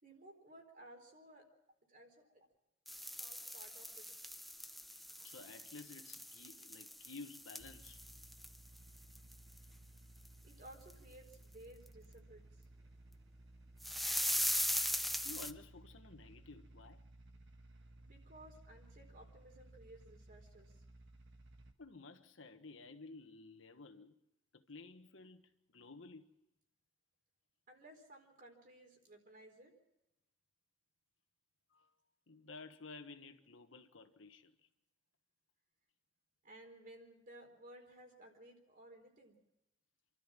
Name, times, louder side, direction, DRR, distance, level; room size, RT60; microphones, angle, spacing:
voice 1, 0.0-1.5 1.9-2.5 3.2-4.1 10.4-12.7 18.0-20.8 27.7-29.7 36.4-39.4, right 1 dB, 45° right, 4.2 m, -58 dB
sound 1, 2.9-8.8 9.1-9.3 9.6-9.7 10.2-10.3 10.9-11.0 13.8-15.5, equal, ahead, 0.6 m, -39 dB
voice 2, 5.2-8.0 15.2-17.0 21.8-24.1 24.5-26.3 31.7-31.9 32.3-34.5, left 3 dB, 80° left, 1.4 m, -53 dB
sound 2, 7.6-21.7, right 1 dB, 65° right, 1.7 m, -59 dB
27.5 x 13.0 x 7.5 m
head